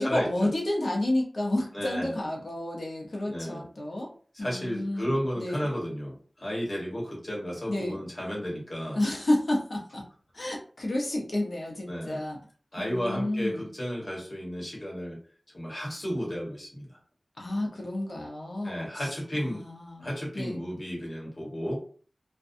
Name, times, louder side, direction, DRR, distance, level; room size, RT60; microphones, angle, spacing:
voice 1, 0.0-4.1 4.4-5.7 7.7-8.0 9.0-10.0 10.3-12.4 12.8-13.7 17.4-20.1 20.3-20.6, left 1 dB, 75° left, -1 dB, 0.7 m, -30 dB
voice 2, 1.7-2.1 3.3-3.6 4.3-9.0 11.9-12.2 12.7-15.2 15.5-16.9 18.6-19.6 20.0-21.8, equal, 45° left, -3 dB, 1.1 m, -33 dB
2.5 x 2.2 x 2.6 m, 0.43 s
wide cardioid pair, 70°, 0 cm